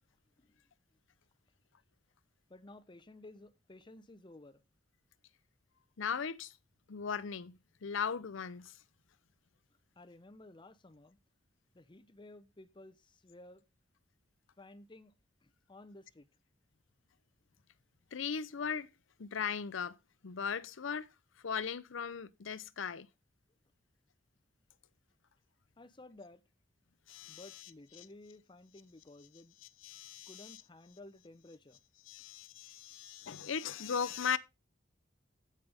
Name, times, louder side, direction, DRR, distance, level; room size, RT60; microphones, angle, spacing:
voice 1, 2.5-4.6 10.0-11.2 11.7-13.0 13.2-13.6 14.6-15.1 15.4-16.3 25.8-26.4 27.3-29.6 30.3-31.8, left 2 dB, 25° left, 0.7 m, -54 dB
voice 2, 6.0-6.5 6.9-8.8 18.1-18.9 19.2-20.0 20.2-21.1 21.4-23.1 27.1-27.7 28.0-28.1 29.6-30.6 32.1-34.4, left 6 dB, 70° left, 0.6 m, -38 dB
16.0 x 5.5 x 3.5 m
head